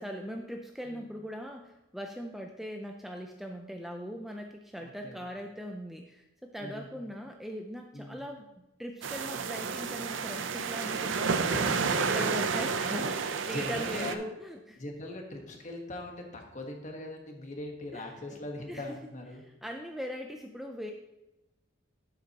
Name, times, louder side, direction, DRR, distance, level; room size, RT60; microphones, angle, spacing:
voice 1, 0.0-8.5 8.8-11.6 12.0-14.8 17.9-18.0 18.7-19.0 19.6-20.9, equal, ahead, 2 dB, 0.4 m, -40 dB
voice 2, 4.8-5.2 6.6-7.1 7.9-8.2 11.5-11.9 13.4-14.2 14.8-19.4, left 1 dB, 40° left, 2 dB, 1.3 m, -40 dB
sound 1, 9.0-14.1, right 5 dB, 70° right, 0.5 m, -30 dB
9.5 x 7.6 x 2.9 m, 0.95 s
head